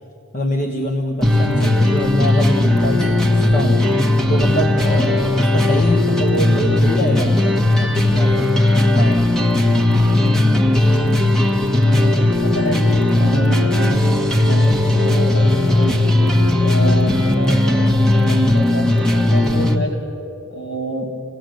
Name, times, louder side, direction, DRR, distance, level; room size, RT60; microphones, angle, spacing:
voice 1, 0.3-3.9 4.3-9.3, equal, 35° left, 2 dB, 1.3 m, -24 dB
sound 1, 1.2-19.8, left 1 dB, ahead, 1.3 m, -16 dB
voice 2, 1.4-1.7 11.8-16.1 16.6-19.0 19.3-20.0 20.5-21.1, right 1 dB, 70° left, -1 dB, 5.6 m, -27 dB
27.0 x 17.5 x 7.8 m, 2.7 s
head